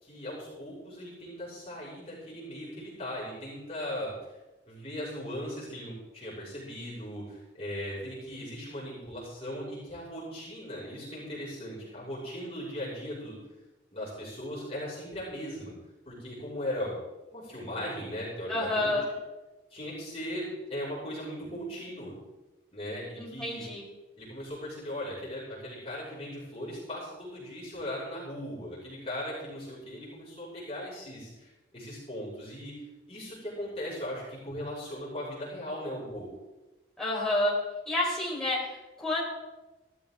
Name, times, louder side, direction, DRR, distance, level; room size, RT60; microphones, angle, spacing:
voice 1, 0.0-4.1 4.7-13.4 13.9-15.7 16.1-16.9 17.3-18.9 19.7-22.1 22.7-23.6 24.2-32.7 33.1-36.3, equal, 35° left, -7 dB, 5.8 m, -38 dB
voice 2, 18.5-19.1 23.2-23.8 37.0-37.5 37.9-39.2, left 1 dB, 5° left, -6 dB, 4.3 m, -29 dB
16.5 x 13.5 x 3.7 m, 1.1 s
head